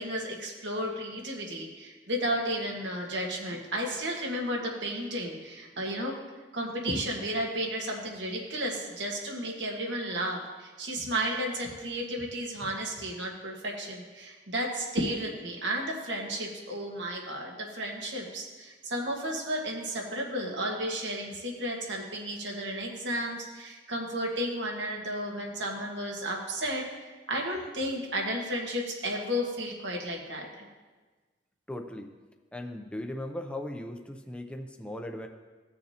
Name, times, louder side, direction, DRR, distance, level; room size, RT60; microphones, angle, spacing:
voice 1, 0.0-6.2 6.5-30.7, equal, 85° right, 0 dB, 1.6 m, -33 dB
voice 2, 31.7-32.1 32.5-35.3, left 1 dB, 5° left, 3 dB, 0.5 m, -38 dB
16.5 x 6.6 x 2.9 m, 1.3 s
head